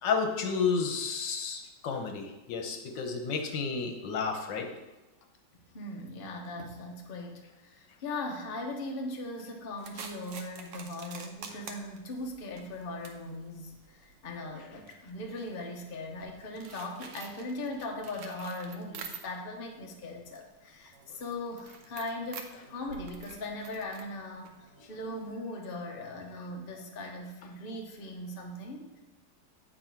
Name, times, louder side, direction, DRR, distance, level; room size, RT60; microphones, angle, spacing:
voice 1, 0.0-4.7, left 5 dB, 80° left, 4 dB, 1.6 m, -31 dB
voice 2, 5.7-29.0, left 2 dB, 40° left, 1 dB, 0.9 m, -39 dB
sound 1, 9.8-19.6 19.9-25.3, right 5 dB, 75° right, 1.4 m, -48 dB
8.4 x 4.4 x 4.5 m, 1.1 s
omnidirectional pair, 2.0 m